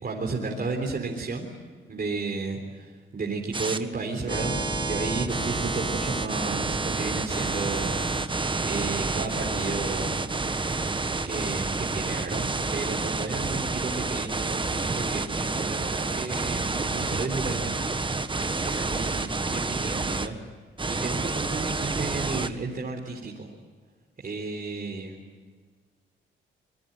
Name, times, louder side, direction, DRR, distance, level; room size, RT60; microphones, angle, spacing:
voice 1, 0.0-1.5 1.9-10.2 11.2-17.9 18.6-20.4 20.9-23.5 24.2-25.2, right 3 dB, 45° right, 0 dB, 3.8 m, -33 dB
sound 1, 3.5-3.8 4.3-20.3 20.8-22.5, right 3 dB, 25° right, 1.4 m, -29 dB
26.0 x 20.5 x 9.1 m, 1.5 s
cardioid pair, 80°, 21 cm